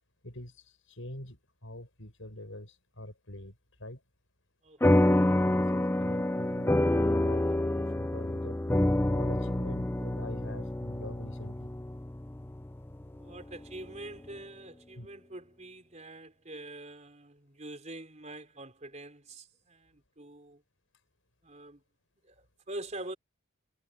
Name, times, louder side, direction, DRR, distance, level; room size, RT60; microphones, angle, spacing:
voice 1, 0.2-3.5 3.8-4.0 5.5-8.6 9.1-11.7 15.0-15.1, left 1 dB, 65° left, 6.9 m, -44 dB
voice 2, 4.6-5.0 13.1-20.6 21.4-21.8 22.2-23.1, right 2 dB, 35° right, 4.1 m, -45 dB
sound 1, 4.8-13.6, left 1 dB, 10° left, 0.4 m, -27 dB
head